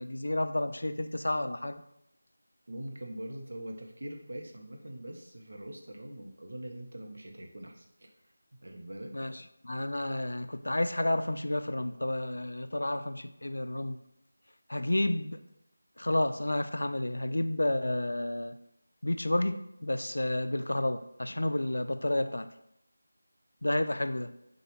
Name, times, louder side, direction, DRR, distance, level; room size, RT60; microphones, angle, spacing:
voice 1, 0.0-1.8 9.1-14.0 14.7-15.4 16.0-18.6 19.0-22.5 23.6-24.3, left 1 dB, 85° left, 10 dB, 0.4 m, -31 dB
voice 2, 2.7-8.1 8.6-9.1, right 1 dB, 55° right, 2 dB, 0.7 m, -43 dB
6.1 x 2.3 x 3.0 m, 0.81 s
figure-of-eight pair, 180°, 0 cm